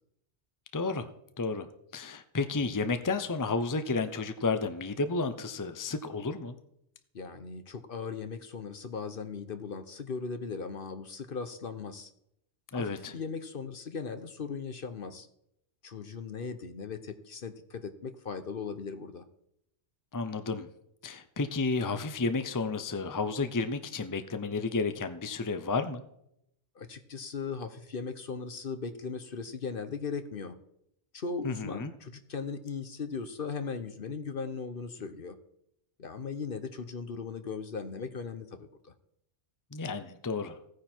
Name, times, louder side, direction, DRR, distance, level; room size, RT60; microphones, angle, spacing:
voice 1, 0.7-1.1 1.4-1.7 1.9-6.6 12.7-13.1 20.1-20.7 21.0-26.0 31.4-31.9 39.7-40.6, left 3 dB, 20° left, 9 dB, 0.7 m, -31 dB
voice 2, 7.1-12.1 12.7-15.3 15.8-19.2 26.7-30.5 31.1-35.4 36.0-38.7, left 5 dB, 55° left, 10 dB, 1.0 m, -38 dB
16.0 x 9.7 x 4.5 m, 0.77 s
omnidirectional pair, 1.2 m